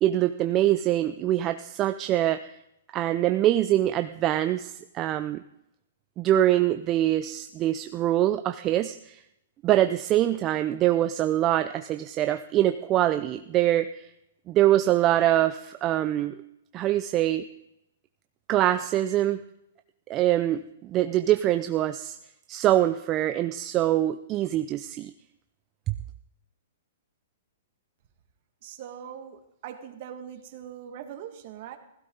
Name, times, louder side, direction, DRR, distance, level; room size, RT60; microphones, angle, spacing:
voice 1, 0.0-2.4 2.9-5.4 6.2-9.2 9.6-14.1 14.5-16.3 16.7-17.4 18.5-19.4 20.1-22.2 22.5-25.1 25.9-26.0, right 13 dB, 30° right, 9 dB, 0.6 m, -24 dB
voice 2, 28.6-31.8, right 9 dB, 50° right, 6 dB, 2.0 m, -41 dB
16.5 x 15.5 x 4.0 m, 0.82 s
hypercardioid pair, 135°, 0 cm